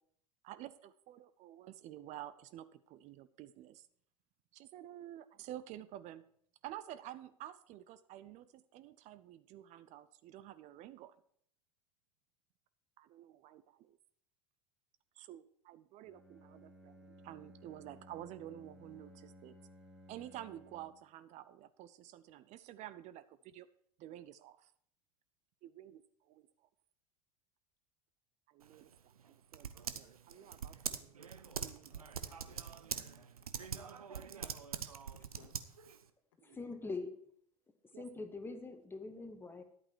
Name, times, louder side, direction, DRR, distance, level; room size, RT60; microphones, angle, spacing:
voice 1, 0.4-3.9 4.5-6.3 6.6-11.1 13.0-14.0 15.2-19.6 20.1-23.7 24.0-24.7 25.6-26.7 28.5-28.9 29.3-31.2 31.6-32.0 33.7-33.8 34.8-34.9 36.4-36.8 37.9-38.2, right 13 dB, 40° right, 15 dB, 0.5 m, -51 dB
Bowed string instrument, 16.0-21.1, equal, 5° right, 1.5 m, -58 dB
Typing, 28.6-36.1, right 7 dB, 80° right, 0.7 m, -44 dB
voice 2, 31.9-34.1 35.3-35.6 36.4-36.6, left 7 dB, 65° left, 6 dB, 1.5 m, -66 dB
voice 3, 36.6-37.1 38.0-39.6, left 3 dB, 10° left, 6 dB, 1.3 m, -43 dB
11.0 x 8.6 x 4.6 m, 0.65 s
figure-of-eight pair, 80°, 18 cm